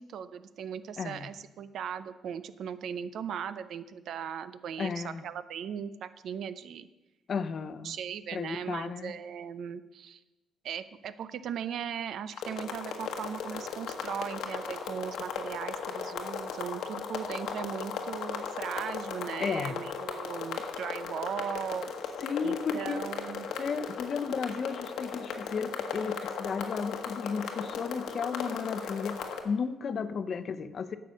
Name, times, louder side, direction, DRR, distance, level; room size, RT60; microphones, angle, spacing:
voice 1, 0.0-6.9 7.8-10.2 10.6-21.9 22.4-23.5, right 8 dB, 70° right, 13 dB, 0.6 m, -38 dB
voice 2, 1.0-1.3 4.8-5.2 7.3-8.0 8.3-9.1 19.4-19.8 22.2-23.0 23.6-29.2 29.4-31.0, left 6 dB, 50° left, 13 dB, 0.7 m, -33 dB
sound 1, 12.3-29.4, left 6 dB, 85° left, 1.3 m, -37 dB
10.5 x 6.8 x 6.3 m, 1.1 s
cardioid pair, 90°, 0 cm